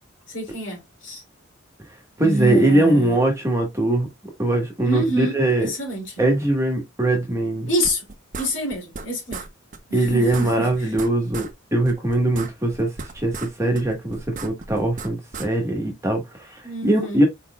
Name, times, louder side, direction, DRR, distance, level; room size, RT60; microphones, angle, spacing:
voice 1, 0.3-1.2 2.2-3.2 4.8-6.2 7.7-8.0 8.3-9.4 9.9-10.9 16.6-17.2, right 1 dB, 75° left, 2.6 m, -27 dB
voice 2, 2.2-4.1 4.4-5.7 6.2-7.7 9.9-12.9 13.1-13.3 13.6-17.2, right 1 dB, 15° right, 1.2 m, -21 dB
sound 1, 7.8-9.1 9.3-9.5 9.7-9.8 10.1-11.5 11.8-13.5 13.7-15.5, right 4 dB, 40° right, 0.6 m, -35 dB
4.4 x 4.1 x 2.2 m
head